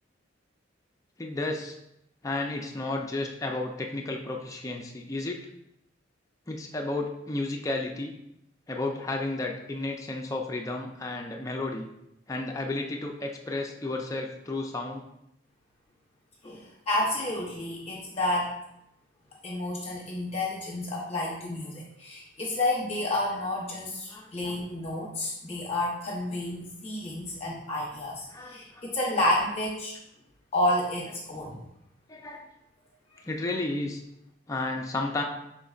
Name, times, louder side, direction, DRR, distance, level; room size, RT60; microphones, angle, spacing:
voice 1, 1.2-1.7 2.2-5.4 6.5-8.1 8.7-11.9 12.3-15.0 24.1-24.5 28.3-28.6 32.1-32.4 33.3-34.0 34.5-35.2, left 2 dB, 15° left, 1 dB, 0.4 m, -32 dB
voice 2, 16.4-18.5 19.4-30.0 30.5-31.6 33.1-33.3, left 1 dB, 30° left, -4 dB, 0.8 m, -30 dB
5.3 x 3.7 x 2.4 m, 0.83 s
head